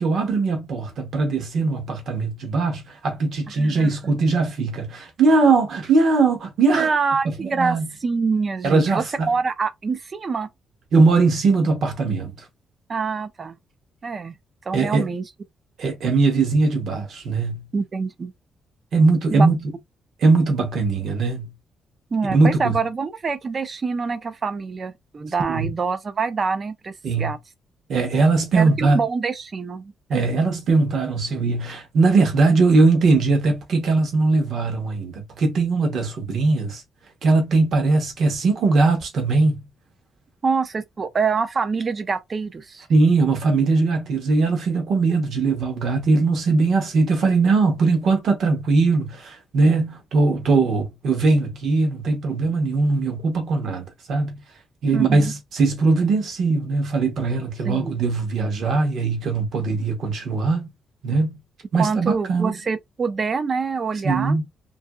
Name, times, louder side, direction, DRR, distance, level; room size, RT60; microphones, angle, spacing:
voice 1, 0.0-6.9 7.4-7.9 8.6-9.3 10.9-12.4 14.7-15.1 15.8-17.6 18.9-19.7 20.2-21.5 22.3-22.8 25.5-25.7 27.0-27.3 27.9-29.0 30.1-36.8 37.2-39.6 42.9-54.4 54.8-60.7 61.0-61.4 61.7-62.6 64.0-64.5, right 3 dB, 50° right, 0.9 m, -20 dB
voice 2, 3.6-3.9 6.8-10.5 12.9-13.6 14.0-14.4 14.7-15.3 17.7-18.3 19.3-19.5 22.1-27.4 28.6-29.9 40.4-42.9 54.9-55.3 57.6-58.0 61.8-64.4, right 5 dB, 25° right, 0.4 m, -25 dB
2.7 x 2.6 x 2.2 m
cardioid pair, 175°, 0 cm